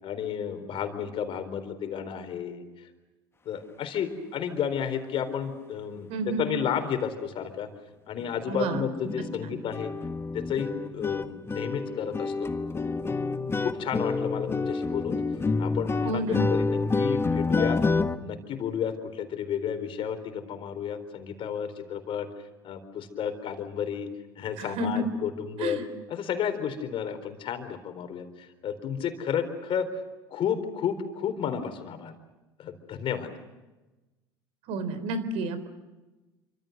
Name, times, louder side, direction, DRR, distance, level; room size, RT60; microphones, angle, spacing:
voice 1, 0.0-2.6 3.5-7.7 8.1-9.9 10.3-12.5 13.6-15.2 15.6-16.2 16.5-17.8 18.2-22.3 22.6-24.1 24.4-25.8 26.1-29.9 30.3-32.1 32.6-33.3, left 8 dB, 50° left, 9 dB, 4.1 m, -32 dB
voice 2, 6.1-6.5 8.5-8.8 9.4-9.6 16.0-16.5 24.6-25.1 25.6-25.9 34.7-35.7, right 2 dB, 60° right, 11 dB, 3.9 m, -30 dB
sound 1, 8.2-8.3 8.6-8.8 9.1-18.2, left 3 dB, 20° left, 1.4 m, -28 dB
28.5 x 25.5 x 6.8 m, 1.1 s
hypercardioid pair, 70°, 12 cm